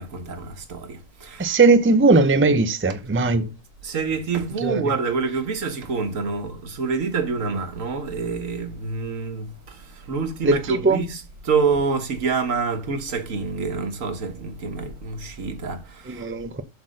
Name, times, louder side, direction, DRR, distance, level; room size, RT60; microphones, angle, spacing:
voice 1, 0.0-1.6 2.9-3.0 3.8-16.3, right 4 dB, 90° right, 1.7 m, -27 dB
voice 2, 1.4-3.5 4.6-4.8 10.4-11.0 16.1-16.6, right 3 dB, 15° right, 0.5 m, -18 dB
8.1 x 4.2 x 6.4 m
omnidirectional pair, 1.3 m